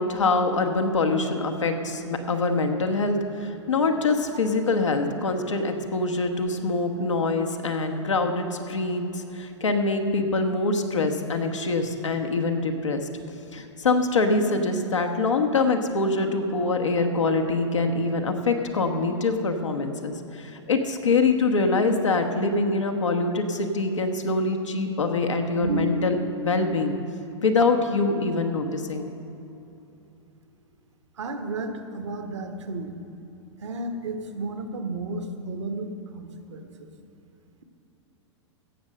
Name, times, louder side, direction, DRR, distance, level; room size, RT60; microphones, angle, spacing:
voice 1, 0.0-13.1 13.5-26.2 26.4-27.0 27.4-29.1, left 3 dB, 85° left, 4 dB, 1.2 m, -24 dB
voice 2, 25.6-26.0 31.2-32.9 33.6-36.9, right 2 dB, 75° right, 6 dB, 1.2 m, -32 dB
16.0 x 6.5 x 6.6 m, 2.8 s
hypercardioid pair, 100°, 15 cm